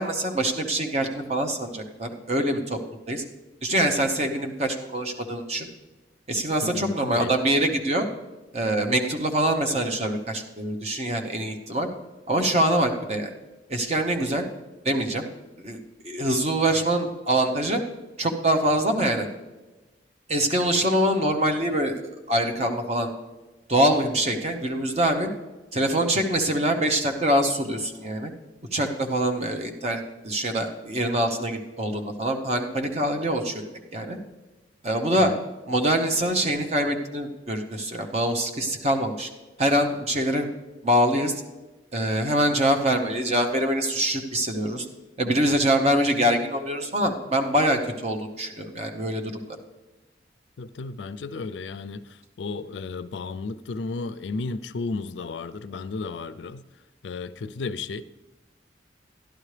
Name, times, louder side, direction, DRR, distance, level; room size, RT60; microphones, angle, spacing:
voice 1, 0.0-2.8 3.1-3.2 3.6-5.7 6.3-8.1 8.5-11.9 12.3-13.3 13.7-14.4 14.8-15.3 15.6-15.8 16.0-17.8 18.2-19.3 20.3-23.1 23.7-25.3 25.7-28.3 28.7-33.6 33.9-34.2 34.8-35.3 35.7-39.3 39.6-40.5 40.8-41.3 41.9-44.9 45.2-49.6, right 1 dB, 35° right, 0.9 m, -24 dB
voice 2, 6.6-7.3 35.3-35.4 50.6-56.6 57.0-58.0, left 4 dB, 90° left, 0.4 m, -33 dB
12.0 x 11.5 x 3.3 m
head